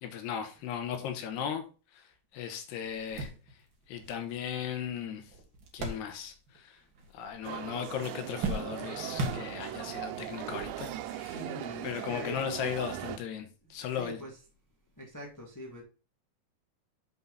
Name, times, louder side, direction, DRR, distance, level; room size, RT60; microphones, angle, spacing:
voice 1, 0.0-1.6 2.3-3.3 3.9-5.3 5.7-6.8 7.1-11.4 11.8-14.2, left 8 dB, 80° left, 6 dB, 3.3 m, -37 dB
sound 1, 2.3-2.4 2.8-6.6 6.9-7.6 7.9-10.0 10.7-10.8 12.1-12.3, right 2 dB, 55° right, 1.3 m, -39 dB
sound 2, 7.4-13.2, right 12 dB, 90° right, 2.9 m, -39 dB
voice 2, 11.1-12.5 13.9-14.4 15.0-15.8, left 1 dB, 20° left, -1 dB, 0.4 m, -43 dB
7.8 x 5.7 x 4.1 m, 0.35 s
omnidirectional pair, 4.8 m